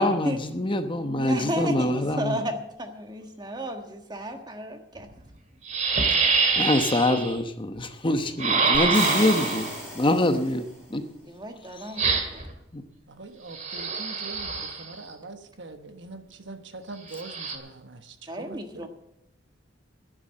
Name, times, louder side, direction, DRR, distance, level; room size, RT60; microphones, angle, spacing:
voice 1, 0.0-2.3 6.6-9.7 9.9-10.6 10.9-11.0 12.7-12.8, left 1 dB, 25° left, 1.0 m, -24 dB
voice 2, 1.0-5.1 11.2-12.4 18.3-18.9, equal, 20° right, 1.5 m, -33 dB
sound 1, 5.0-5.1 5.7-7.3 8.4-9.8 12.0-12.5 13.5-14.9 17.1-17.6, right 4 dB, 40° right, 2.2 m, -25 dB
sound 2, 8.7-10.8, equal, ahead, 6.0 m, -33 dB
voice 3, 13.1-18.9, right 3 dB, 65° right, 1.3 m, -43 dB
11.5 x 10.5 x 7.7 m
head